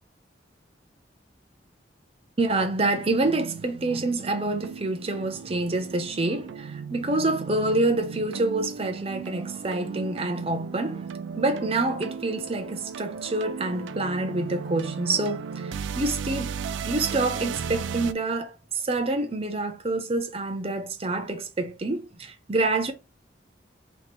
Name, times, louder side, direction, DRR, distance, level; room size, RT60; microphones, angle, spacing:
voice 1, 2.4-11.1 11.4-16.6 16.8-22.9, right 2 dB, 30° right, 0.6 m, -27 dB
sound 1, 3.2-18.1, right 6 dB, 85° right, 0.4 m, -36 dB
3.2 x 2.9 x 4.1 m
head